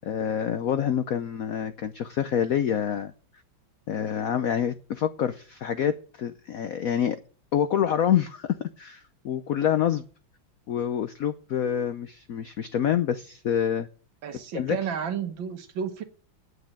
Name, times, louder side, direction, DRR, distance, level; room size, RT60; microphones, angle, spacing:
voice 1, 0.0-3.1 3.9-7.2 7.5-10.0 10.7-13.9 14.5-14.8, left 9 dB, 75° left, 10 dB, 0.8 m, -27 dB
voice 2, 14.2-16.0, right 7 dB, 70° right, 8 dB, 1.9 m, -32 dB
9.6 x 6.5 x 8.8 m, 0.41 s
omnidirectional pair, 2.2 m